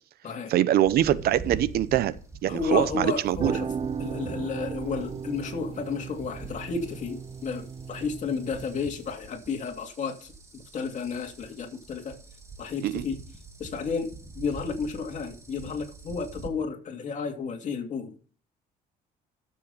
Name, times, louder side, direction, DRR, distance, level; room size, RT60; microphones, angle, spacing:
voice 1, 0.5-2.1 2.4-3.5 12.8-13.0, right 12 dB, 65° right, 0.8 m, -23 dB
sound 1, 0.8-16.5, right 3 dB, 15° right, 2.3 m, -44 dB
voice 2, 2.5-3.7 4.0-12.2 12.6-13.2 13.6-18.1, left 5 dB, 45° left, 2.8 m, -32 dB
sound 2, 3.2-9.1, right 6 dB, 35° right, 0.6 m, -36 dB
13.0 x 7.6 x 5.3 m
cardioid pair, 110°, 17 cm